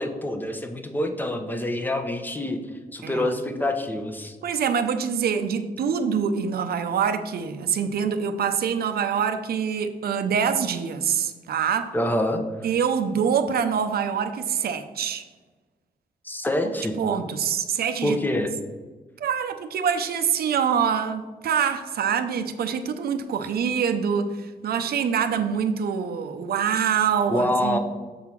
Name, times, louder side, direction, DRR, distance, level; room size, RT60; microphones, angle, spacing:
voice 1, 0.0-2.6 2.9-4.4 11.9-12.4 16.2-16.9 18.0-18.5 27.3-27.8, left 1 dB, 10° left, 0.7 m, -26 dB
voice 2, 4.4-11.9 12.6-15.3 17.0-18.2 19.2-27.8, right 7 dB, 80° right, 0.6 m, -25 dB
6.8 x 3.7 x 5.9 m
wide cardioid pair, 150°, 16 cm